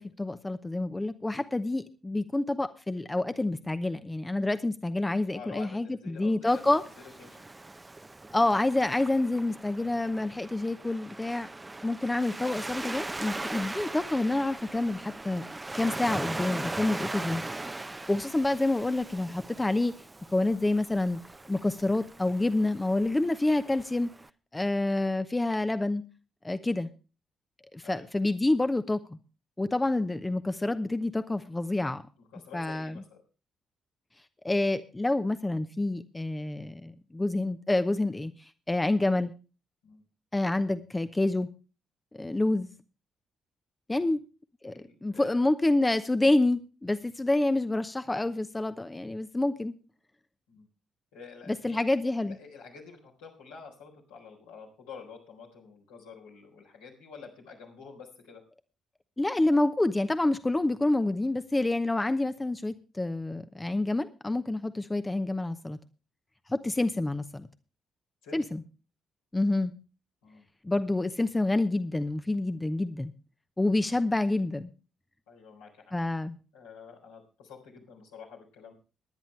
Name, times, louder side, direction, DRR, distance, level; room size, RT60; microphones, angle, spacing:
voice 1, 0.0-6.8 8.3-11.5 11.8-15.4 15.8-17.4 18.1-19.9 20.3-21.2 21.5-24.1 24.5-26.0 26.4-26.9 27.7-29.0 29.6-32.0 32.5-33.0 34.4-38.3 38.7-39.3 40.3-41.5 42.1-42.7 43.9-44.2 44.6-44.7 45.0-49.7 51.5-52.4 59.2-65.8 66.5-67.5 68.3-68.6 69.3-69.7 70.6-73.1 73.6-74.7 75.9-76.4, left 2 dB, 20° left, 10 dB, 0.8 m, -28 dB
voice 2, 5.3-7.4 27.8-28.1 32.3-33.2 39.8-40.0 43.9-44.2 44.6-45.4 50.5-50.7 51.1-51.8 52.2-58.4 68.2-68.4 70.2-70.5 75.3-75.9 76.5-78.7, left 5 dB, 80° left, -2 dB, 4.0 m, -48 dB
Waves surf, 6.5-24.3, right 2 dB, 20° right, 0.7 m, -40 dB
20.0 x 10.0 x 3.3 m, 0.34 s
hypercardioid pair, 45°, 0 cm